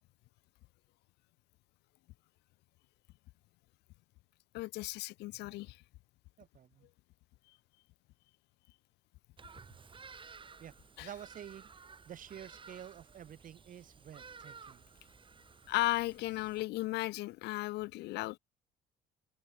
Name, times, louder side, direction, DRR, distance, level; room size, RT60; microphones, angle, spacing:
voice 1, 4.5-5.8 11.0-11.1 15.7-18.4, left 19 dB, 85° left, 0.8 m, -35 dB
voice 2, 6.4-6.9 10.6-10.7 11.0-11.7 12.1-14.9, right 9 dB, 50° right, 6.2 m, -49 dB
Bird vocalization bird call bird song, 9.4-16.6, right 5 dB, 30° right, 7.5 m, -55 dB
cardioid pair, 110°, 17 cm